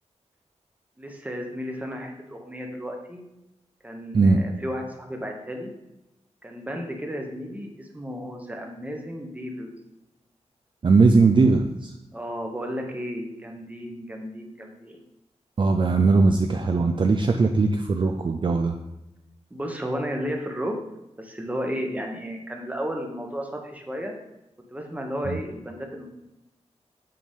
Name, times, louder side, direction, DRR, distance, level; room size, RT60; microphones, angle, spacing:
voice 1, 1.0-3.2 3.8-5.7 6.4-9.7 12.1-15.0 19.5-20.7 21.2-24.1 24.7-26.1, equal, 10° right, 2 dB, 1.0 m, -33 dB
voice 2, 10.8-11.9 15.6-18.8 25.3-25.4, right 4 dB, 40° right, 4 dB, 0.4 m, -19 dB
7.7 x 5.0 x 3.6 m, 0.92 s
wide cardioid pair, 130°, 12 cm